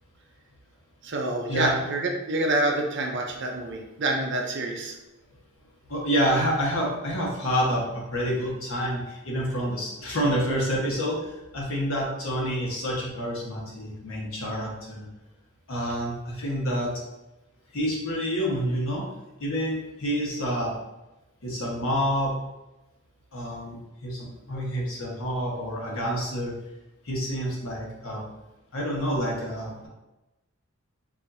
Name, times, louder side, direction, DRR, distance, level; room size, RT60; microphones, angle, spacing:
voice 1, 1.0-5.0, right 2 dB, 60° right, 2 dB, 0.6 m, -27 dB
voice 2, 5.9-15.1 15.7-16.9 17.7-19.0 19.4-20.7 21.4-22.3 23.3-26.5 27.0-28.2 28.7-29.9, equal, 75° left, -3 dB, 1.2 m, -28 dB
4.9 x 2.7 x 2.7 m, 0.99 s
head